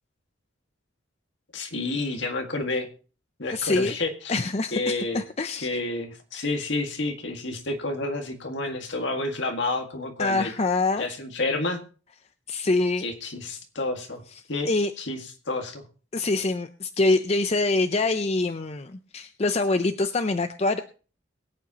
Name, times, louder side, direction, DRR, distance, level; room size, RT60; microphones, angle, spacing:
voice 1, 1.5-2.9 3.4-4.4 4.7-5.2 5.6-10.5 11.0-11.8 13.0-14.2 14.5-14.7 15.0-15.2 15.5-15.8, left 2 dB, 65° left, 5 dB, 1.9 m, -29 dB
voice 2, 3.5-4.0 4.3-5.7 10.2-11.1 12.5-13.1 14.3-14.4 14.7-14.9 16.1-20.8, left 2 dB, 35° left, 9 dB, 0.5 m, -25 dB
22.5 x 8.6 x 2.9 m, 0.37 s
head